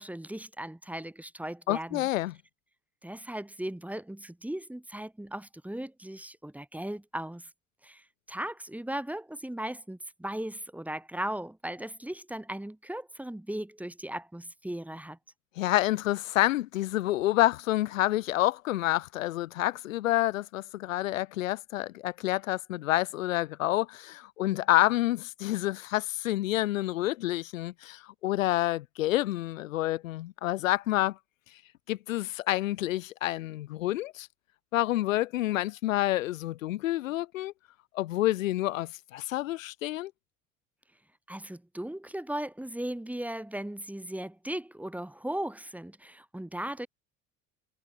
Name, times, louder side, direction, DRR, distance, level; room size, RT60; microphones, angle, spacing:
voice 1, 0.0-2.1 3.0-7.5 7.8-15.2 41.3-46.9, right 1 dB, 5° right, 1.4 m, -37 dB
voice 2, 1.7-2.3 15.6-31.2 31.9-34.3 34.7-37.5 37.9-40.1, left 15 dB, 85° left, 0.5 m, -28 dB
hypercardioid pair, 65°, 38 cm